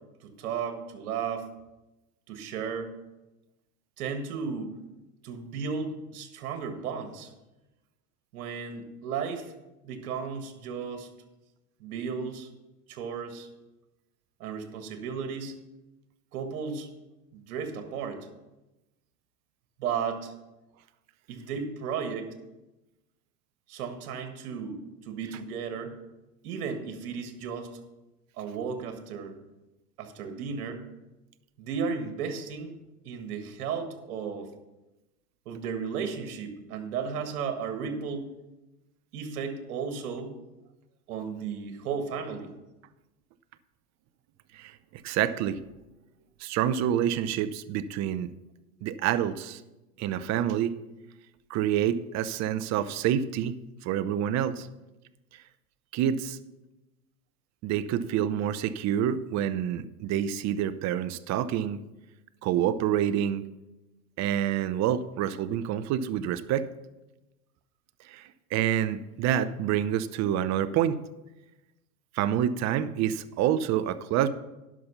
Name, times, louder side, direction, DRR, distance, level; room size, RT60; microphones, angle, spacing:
voice 1, 0.2-1.5 2.3-2.9 4.0-4.7 5.2-7.3 8.3-9.5 9.8-11.1 11.8-12.5 12.9-13.5 14.4-15.5 16.3-16.9 17.3-18.3 19.8-20.3 21.3-22.3 23.7-26.0 26.4-27.7 28.4-29.3 30.0-30.8 31.6-32.7 33.0-34.5 35.4-38.3 39.1-40.4 41.1-42.5, right 6 dB, 70° right, 7 dB, 1.7 m, -34 dB
voice 2, 44.5-45.6 46.4-48.3 48.8-49.6 50.0-50.8 51.5-54.7 55.9-56.4 57.6-61.8 62.4-63.4 64.2-66.7 68.1-71.0 72.1-74.3, right 10 dB, 40° right, 13 dB, 0.7 m, -27 dB
11.0 x 6.1 x 5.6 m, 1.0 s
hypercardioid pair, 100°, 45 cm